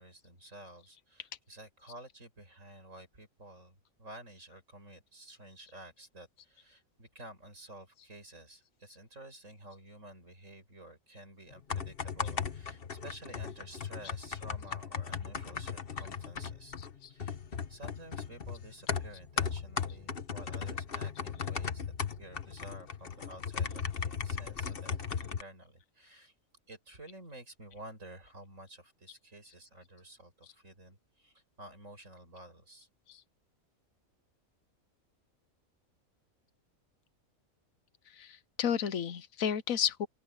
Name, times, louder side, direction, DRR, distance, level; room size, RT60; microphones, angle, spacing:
voice 1, 0.0-17.4 17.7-21.8 22.2-26.3 26.7-32.9, right 1 dB, 65° right, 8.4 m, -51 dB
sound 1, 11.5-25.4, left 6 dB, 45° left, 1.3 m, -37 dB
voice 2, 38.1-40.1, left 8 dB, 75° left, 1.3 m, -32 dB
open air
omnidirectional pair, 1.4 m